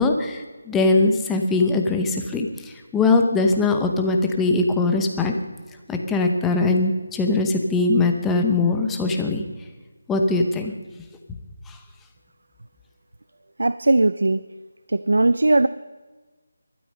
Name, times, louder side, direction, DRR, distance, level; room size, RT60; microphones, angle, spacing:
voice 1, 0.0-5.3 5.9-9.4 10.1-10.7 11.7-11.8, left 3 dB, 5° left, 3 dB, 0.8 m, -21 dB
voice 2, 13.6-14.4 14.9-15.7, right 2 dB, 80° right, 15 dB, 0.5 m, -18 dB
19.5 x 12.5 x 5.5 m, 1.3 s
figure-of-eight pair, 175°, 0 cm